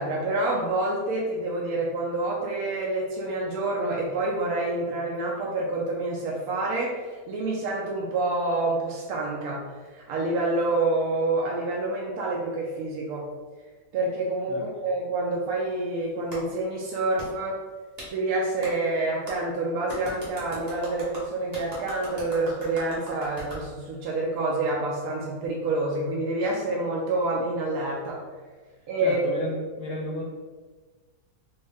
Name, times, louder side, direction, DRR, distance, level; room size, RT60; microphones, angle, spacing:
voice 1, 0.0-9.7 9.9-13.3 13.9-17.6 18.1-28.2 28.9-29.2, right 2 dB, 70° right, -3 dB, 0.8 m, -27 dB
Clapping, 16.3-16.4 17.2-17.3 18.0-18.1 18.6-18.7 19.3-19.4 19.9-23.6, right 1 dB, 30° right, 0.7 m, -39 dB
voice 2, 29.0-30.2, left 2 dB, 75° left, -2 dB, 1.1 m, -32 dB
3.2 x 2.7 x 3.4 m, 1.4 s
omnidirectional pair, 2.0 m